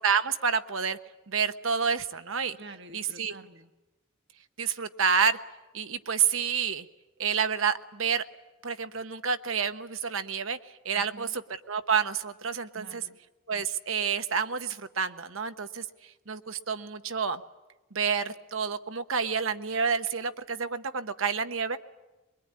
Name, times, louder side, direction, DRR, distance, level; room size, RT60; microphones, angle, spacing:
voice 1, 0.0-1.0 1.3-2.6 2.9-3.3 4.6-5.4 5.7-6.9 7.2-8.2 8.6-11.4 11.7-13.0 13.5-17.4 17.9-21.8, right 6 dB, 75° right, 10 dB, 1.1 m, -29 dB
voice 2, 2.6-3.7 10.9-11.3 12.7-13.2, right 3 dB, 60° right, 8 dB, 1.3 m, -48 dB
23.0 x 22.5 x 9.6 m, 1.1 s
head